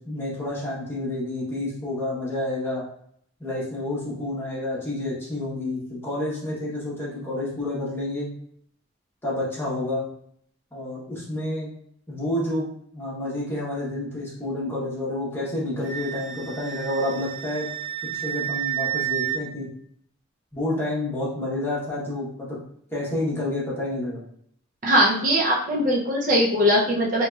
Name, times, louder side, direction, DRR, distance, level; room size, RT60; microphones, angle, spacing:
voice 1, 0.0-2.8 3.4-8.3 9.2-10.0 10.7-11.7 12.1-12.7 12.9-17.7 18.1-19.7 20.5-22.6 22.9-24.2, left 1 dB, 10° left, -7 dB, 1.0 m, -29 dB
Wind instrument woodwind instrument, 15.8-19.4, right 12 dB, 85° right, 1.0 m, -30 dB
voice 2, 24.8-27.3, equal, 40° right, -3 dB, 0.5 m, -20 dB
2.9 x 2.8 x 2.3 m, 0.66 s
head